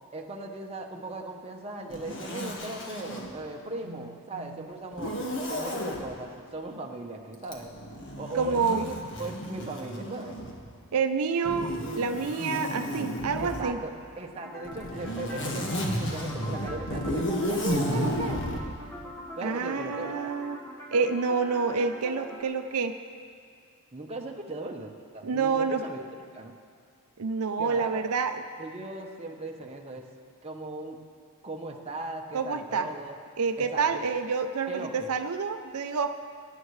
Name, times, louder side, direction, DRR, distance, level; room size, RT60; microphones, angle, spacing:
voice 1, 0.1-5.1 5.5-7.7 8.2-8.9 9.2-10.4 13.4-18.4 19.4-20.3 23.9-26.0 26.3-26.5 27.6-28.0 28.6-30.1 30.4-31.0 31.4-33.2 33.6-34.0 34.7-35.1, right 2 dB, 25° right, 2 dB, 0.9 m, -38 dB
Zipper (clothing), 1.9-3.3 4.9-6.0 7.4-10.7 11.4-13.7 14.6-18.6, equal, 55° left, 1.7 m, -32 dB
voice 2, 8.3-8.9 10.9-13.8 19.4-20.6 20.9-22.9 25.2-25.8 27.2-28.4 32.3-32.9 33.4-36.1, right 5 dB, 80° right, 8 dB, 0.5 m, -28 dB
sound 1, 14.4-22.4, equal, 10° left, 1.4 m, -43 dB
23.0 x 11.0 x 3.2 m, 2.2 s
head